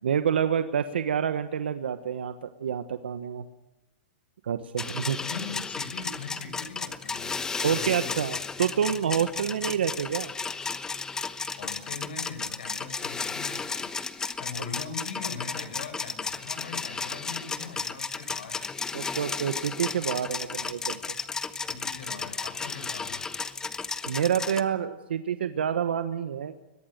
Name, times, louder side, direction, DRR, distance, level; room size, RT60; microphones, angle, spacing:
voice 1, 0.0-3.4 4.4-5.2 7.6-10.3 18.9-21.0 24.0-26.6, right 8 dB, 90° right, 10 dB, 1.2 m, -28 dB
sound 1, 4.8-24.6, left 4 dB, 10° left, 1.0 m, -34 dB
voice 2, 5.2-8.2 11.6-13.9 14.4-18.6 19.3-19.5 21.6-23.2, left 5 dB, 80° left, 6 dB, 7.5 m, -41 dB
22.5 x 21.0 x 6.6 m, 1.0 s
hypercardioid pair, 145°, 6 cm